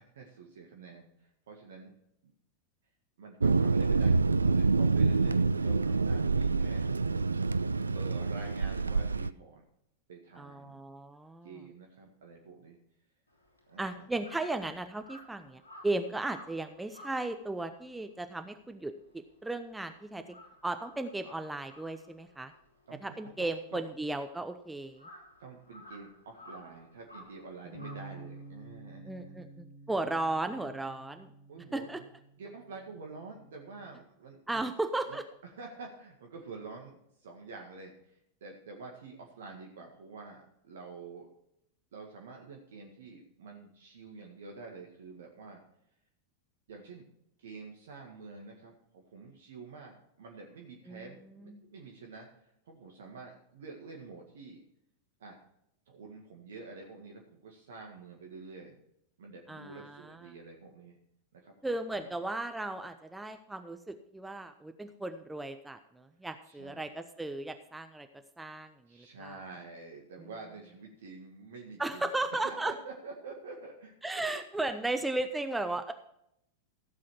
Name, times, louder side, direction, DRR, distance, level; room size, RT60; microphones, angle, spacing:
voice 1, 0.0-1.9 2.2-2.3 3.2-4.2 4.4-6.8 7.9-9.7 10.1-10.8 11.4-12.8 13.7-14.1 22.9-23.8 25.4-29.5 31.5-32.1 32.4-34.7 35.1-41.3 41.9-45.6 46.7-47.1 47.4-54.6 55.2-55.4 55.9-58.8 59.2-61.0 61.3-61.5 62.0-62.1 66.4-66.8 68.9-74.4, right 4 dB, 60° right, 1 dB, 1.9 m, -48 dB
Thunder, 3.4-9.3, right 4 dB, 75° right, 0.3 m, -27 dB
voice 2, 10.4-11.6 13.8-20.2 20.6-22.5 23.0-25.1 29.1-31.3 31.7-32.0 34.5-35.2 50.9-51.1 51.4-51.6 59.5-60.2 61.6-68.1 68.4-68.7 69.2-69.3 71.8-72.7 74.0-75.9, right 2 dB, 5° right, 8 dB, 0.8 m, -35 dB
Crow, 13.3-19.8 20.1-28.7, left 1 dB, 80° left, 3.4 m, -55 dB
sound 1, 27.7-34.0, right 3 dB, 55° left, 2.6 m, -51 dB
15.5 x 7.5 x 4.5 m, 0.75 s
figure-of-eight pair, 90°, 0 cm